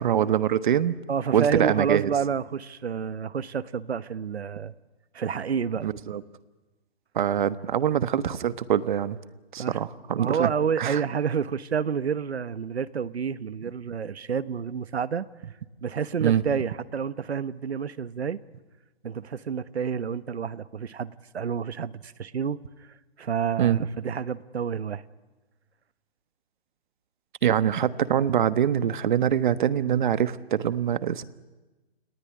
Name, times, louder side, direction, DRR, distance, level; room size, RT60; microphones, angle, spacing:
voice 1, 0.0-1.0 1.3-2.1 5.8-6.2 7.1-9.2 9.5-10.5 10.8-11.0 16.2-16.4 23.6-23.8 27.4-31.2, right 9 dB, 50° right, 1.3 m, -24 dB
voice 2, 1.1-4.7 5.1-5.9 9.6-9.8 10.1-15.3 15.8-18.4 19.0-22.9 23.2-25.0, right 7 dB, 80° right, 1.3 m, -29 dB
30.0 x 19.5 x 9.8 m
hypercardioid pair, 155°, 32 cm